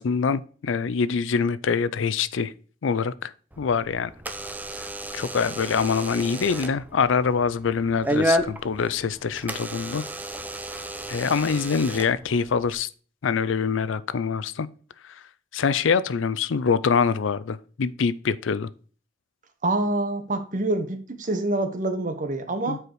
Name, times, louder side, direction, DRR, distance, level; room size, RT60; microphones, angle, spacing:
voice 1, 0.0-2.5 2.8-4.1 5.1-10.0 11.1-12.9 13.2-14.7 15.5-18.7 22.7-22.8, left 5 dB, 80° left, 0.5 m, -24 dB
Door / Alarm, 3.5-12.7, right 1 dB, 10° right, 0.7 m, -32 dB
voice 2, 19.6-22.8, right 2 dB, 45° right, 1.1 m, -26 dB
7.7 x 4.8 x 4.7 m
head